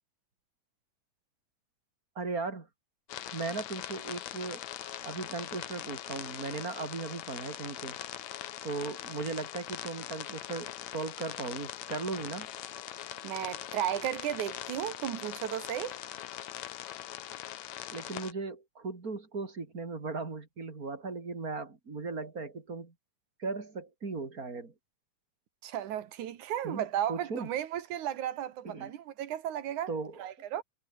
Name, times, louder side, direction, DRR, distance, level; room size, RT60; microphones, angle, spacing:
voice 1, 2.1-2.7 3.3-4.6 5.0-8.0 8.6-12.5 17.9-22.9 23.4-24.7 26.6-27.5 28.6-28.9 29.9-30.2, right 4 dB, 25° right, 3.4 m, -37 dB
sound 1, 3.1-18.3, left 12 dB, 65° left, 2.3 m, -41 dB
voice 2, 13.2-16.0 25.6-29.9 30.2-30.6, right 11 dB, 70° right, 2.8 m, -34 dB
omnidirectional pair, 3.7 m